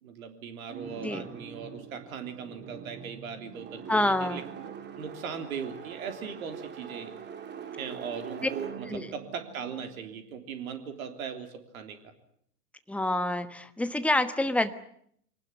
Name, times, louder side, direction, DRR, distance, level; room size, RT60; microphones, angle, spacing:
voice 1, 0.0-4.7 5.0-7.1 7.8-12.1, right 6 dB, 60° right, 7 dB, 3.6 m, -39 dB
sound 1, 0.7-10.6, right 7 dB, 20° right, 2.7 m, -43 dB
voice 2, 3.9-4.4 8.9-9.1 12.9-14.7, left 1 dB, 5° left, 11 dB, 1.2 m, -27 dB
24.5 x 19.0 x 9.7 m, 0.67 s
figure-of-eight pair, 100°, 47 cm